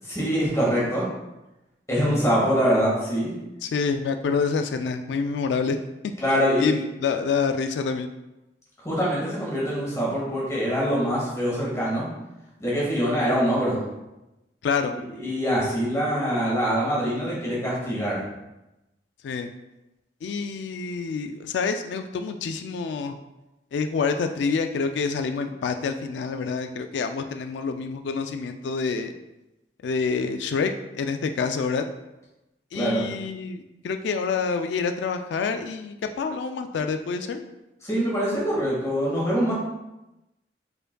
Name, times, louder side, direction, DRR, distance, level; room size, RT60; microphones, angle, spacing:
voice 1, 0.1-1.1 1.9-3.3 6.2-6.7 8.8-12.0 12.6-13.8 15.2-18.2 32.7-33.1 37.8-39.5, equal, 15° left, -5 dB, 1.6 m, -24 dB
voice 2, 3.6-5.8 6.6-8.1 14.6-14.9 19.2-19.5 20.2-23.2 23.7-29.1 29.8-30.7 31.0-31.8 32.7-37.4, left 5 dB, 80° left, 7 dB, 0.3 m, -27 dB
5.1 x 4.7 x 2.2 m, 0.97 s
head